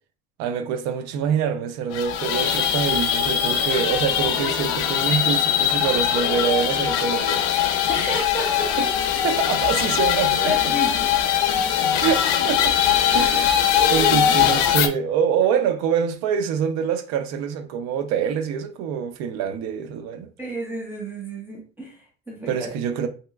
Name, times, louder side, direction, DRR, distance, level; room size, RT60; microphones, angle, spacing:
voice 1, 0.4-7.4 8.8-8.9 9.2-10.6 12.0-12.8 13.1-20.3 22.5-23.1, right 7 dB, 60° right, 0.5 m, -25 dB
sound 1, 1.9-14.9, left 9 dB, 80° left, 0.5 m, -21 dB
voice 2, 7.9-8.9 10.4-11.5 13.8-14.1 20.4-22.7, equal, 5° right, 0.6 m, -31 dB
3.1 x 2.8 x 2.3 m
cardioid pair, 145°, 30 cm